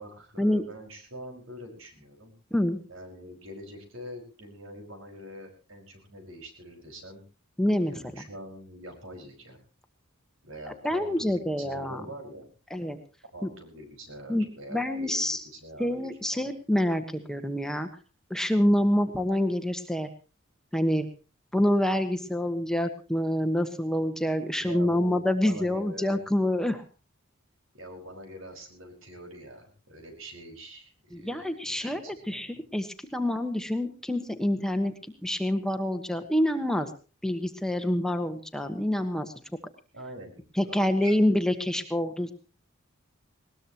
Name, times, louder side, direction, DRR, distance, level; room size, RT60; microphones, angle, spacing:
voice 1, 0.0-2.3 2.9-7.2 7.9-9.6 10.4-12.5 13.3-16.5 24.6-26.2 27.7-32.5 39.9-41.2, right 1 dB, 75° right, 4 dB, 5.4 m, -44 dB
voice 2, 7.6-8.2 10.8-12.0 12.7-13.0 13.4-13.5 14.3-15.4 15.8-17.9 18.3-20.1 20.7-21.1 21.5-26.8 31.1-34.9 35.2-36.9 37.2-39.3 40.5-42.3, left 1 dB, 5° left, 7 dB, 1.2 m, -27 dB
20.5 x 19.0 x 3.0 m, 0.34 s
head